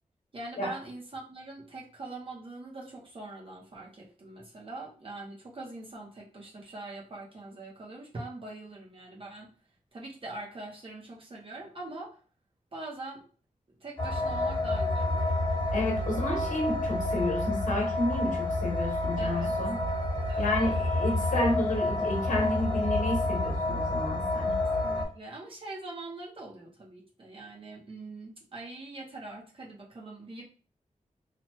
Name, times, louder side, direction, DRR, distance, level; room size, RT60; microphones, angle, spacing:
voice 1, 0.3-9.5 9.9-12.2 12.7-13.2 13.8-15.4 19.2-19.5 20.3-20.8 24.8-30.4, right 2 dB, 45° right, -3 dB, 0.7 m, -43 dB
sound 1, 14.0-25.0, left 2 dB, 40° left, 1.1 m, -29 dB
voice 2, 15.7-19.8 20.4-24.6, left 1 dB, 80° left, -1 dB, 0.9 m, -31 dB
2.9 x 2.2 x 3.0 m, 0.39 s
wide cardioid pair, 140°, 13 cm